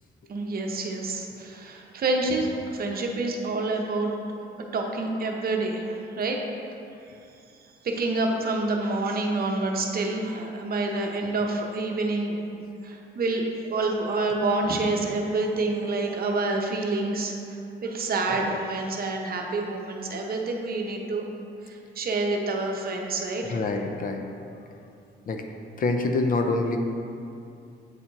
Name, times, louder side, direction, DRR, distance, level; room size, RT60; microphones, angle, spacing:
voice 1, 0.3-4.1 4.7-6.4 7.1-7.2 7.8-12.4 12.8-21.3 21.6-23.4, right 2 dB, 50° right, 1 dB, 0.8 m, -28 dB
voice 2, 23.4-24.5 25.3-25.4 25.8-26.8, left 3 dB, 45° left, 5 dB, 0.5 m, -26 dB
8.2 x 4.2 x 2.9 m, 2.6 s
cardioid pair, 90°, 20 cm